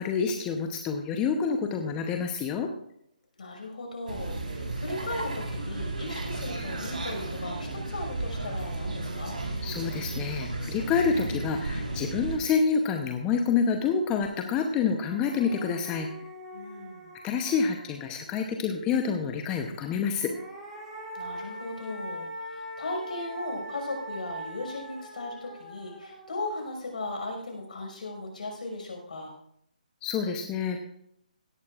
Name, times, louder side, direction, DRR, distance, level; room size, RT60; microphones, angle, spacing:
voice 1, 0.0-2.7 9.6-16.1 17.2-20.3 30.0-30.8, left 6 dB, 15° left, 4 dB, 0.8 m, -27 dB
voice 2, 3.4-9.4 16.5-17.1 21.1-29.3, left 2 dB, 60° left, 2 dB, 5.5 m, -37 dB
sound 1, 4.1-12.4, right 2 dB, 70° right, 4.2 m, -34 dB
sound 2, 14.2-14.3 14.7-18.3 20.0-27.3, right 1 dB, 5° right, 3.4 m, -42 dB
17.0 x 13.5 x 2.5 m, 0.72 s
figure-of-eight pair, 150°, 5 cm